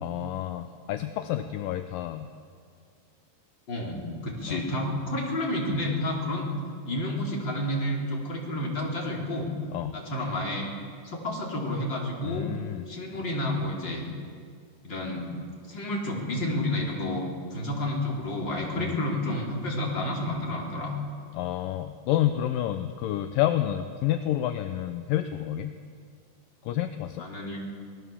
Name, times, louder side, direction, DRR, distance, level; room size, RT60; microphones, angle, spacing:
voice 1, 0.0-2.3 4.5-4.6 9.7-10.0 12.2-12.9 18.8-19.0 21.3-25.7 26.6-27.3, left 12 dB, 75° left, 8 dB, 2.2 m, -29 dB
voice 2, 3.7-6.5 6.8-9.5 9.9-10.7 11.0-12.5 12.9-14.1 14.8-15.3 15.6-17.2 17.5-20.9 27.2-27.7, left 1 dB, 30° left, -2 dB, 4.4 m, -30 dB
25.5 x 18.5 x 7.2 m, 2.1 s
omnidirectional pair, 4.5 m